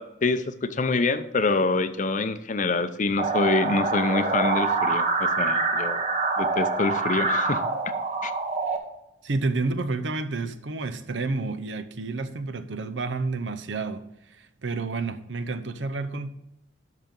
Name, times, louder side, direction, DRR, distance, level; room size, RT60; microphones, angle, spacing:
voice 1, 0.0-6.1 6.4-7.6 8.2-8.3, left 3 dB, 45° left, 0.6 m, -26 dB
sound 1, 3.2-8.8, right 3 dB, 35° right, 1.2 m, -25 dB
voice 2, 9.2-14.0 14.4-16.3, right 3 dB, 70° right, 0.7 m, -30 dB
12.5 x 5.8 x 3.8 m
head